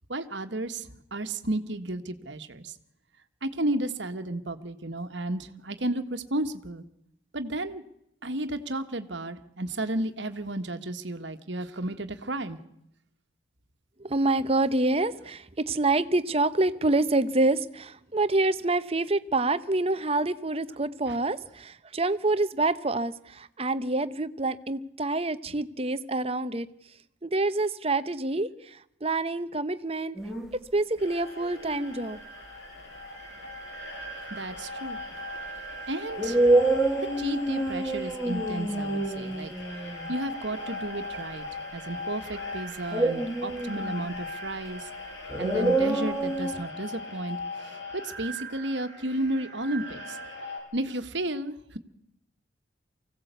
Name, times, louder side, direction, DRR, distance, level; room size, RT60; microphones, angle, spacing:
voice 1, 0.1-2.7 3.4-6.8 7.3-7.8 8.2-12.6 34.3-35.0 35.9-36.6 37.0-39.5 40.1-41.4 41.7-44.9 45.4-50.2 50.7-51.8, right 1 dB, 65° right, 8 dB, 1.5 m, -33 dB
voice 2, 14.0-26.7 27.2-30.2 30.7-32.2, right 2 dB, 30° right, 13 dB, 0.8 m, -27 dB
sound 1, 30.1-30.5 31.4-32.0 35.0-35.1 36.2-40.1 42.9-44.1 45.3-46.5, right 2 dB, ahead, 2.0 m, -27 dB
sound 2, 31.0-50.6, left 2 dB, 70° left, 5.7 m, -39 dB
24.5 x 16.0 x 8.3 m, 0.78 s
head